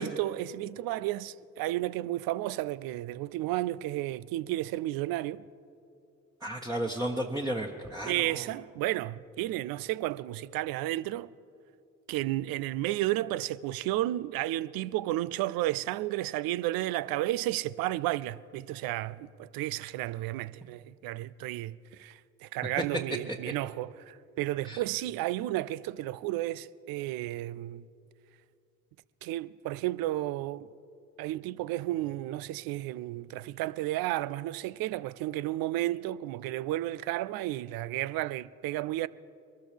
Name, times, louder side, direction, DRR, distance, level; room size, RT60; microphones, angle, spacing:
voice 1, 0.0-5.4 8.1-11.3 12.1-27.9 29.2-30.7 31.2-39.1, right 15 dB, 65° right, 0.5 m, -32 dB
voice 2, 6.4-8.4 24.6-24.8, right 1 dB, 10° right, 1.3 m, -33 dB
23.5 x 13.5 x 3.4 m
hypercardioid pair, 40°, 38 cm